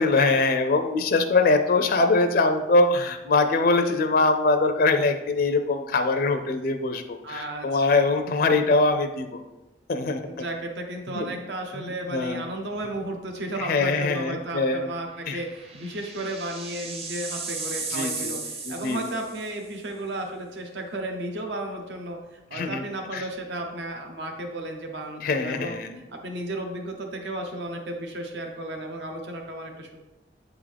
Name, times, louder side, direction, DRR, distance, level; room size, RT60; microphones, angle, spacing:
voice 1, 0.0-9.4 9.9-10.2 11.1-11.2 11.8-12.4 13.6-14.9 15.3-15.4 17.9-18.3 18.7-19.0 22.5-22.8 23.1-23.2 25.2-26.0, left 3 dB, 55° left, 7 dB, 0.4 m, -23 dB
voice 2, 7.2-8.1 10.2-25.8 26.1-30.0, right 1 dB, 75° right, 3 dB, 0.8 m, -34 dB
sound 1, 12.8-13.1 13.5-13.6 15.0-19.7, right 4 dB, 35° right, 0.7 m, -35 dB
8.0 x 3.6 x 3.4 m, 1.0 s
head